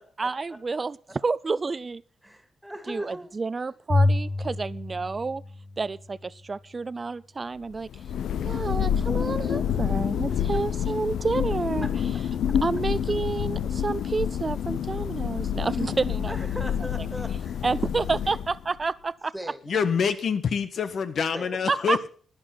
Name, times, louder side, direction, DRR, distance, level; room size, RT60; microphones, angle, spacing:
voice 1, 0.2-2.0 2.9-5.4 5.8-7.9 8.4-11.9 12.6-16.4 17.6-19.3 21.7-22.1, right 4 dB, 35° right, 20 dB, 0.5 m, -29 dB
voice 2, 2.2-3.3 10.3-10.4 16.2-17.6 18.2-18.4 19.3-19.6 21.3-21.5, right 1 dB, 5° right, 8 dB, 2.3 m, -39 dB
Bowed string instrument, 3.9-6.3, left 2 dB, 35° left, 1.5 m, -27 dB
Thunder, 7.8-18.8, left 9 dB, 90° left, 0.6 m, -28 dB
voice 3, 19.7-22.0, left 6 dB, 65° left, 12 dB, 1.3 m, -26 dB
11.5 x 10.5 x 5.9 m, 0.43 s
cardioid pair, 100°, 0 cm